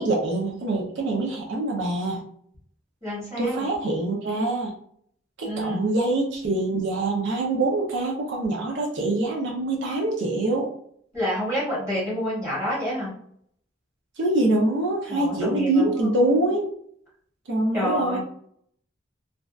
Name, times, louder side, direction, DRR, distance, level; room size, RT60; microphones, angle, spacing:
voice 1, 0.0-2.2 3.4-4.8 5.4-10.7 14.2-16.7 17.5-18.2, right 2 dB, 75° right, -1 dB, 0.5 m, -24 dB
voice 2, 3.0-3.7 5.4-5.8 11.1-13.1 15.1-16.2 17.7-18.2, equal, 15° right, -7 dB, 1.0 m, -28 dB
2.6 x 2.1 x 2.3 m, 0.65 s
head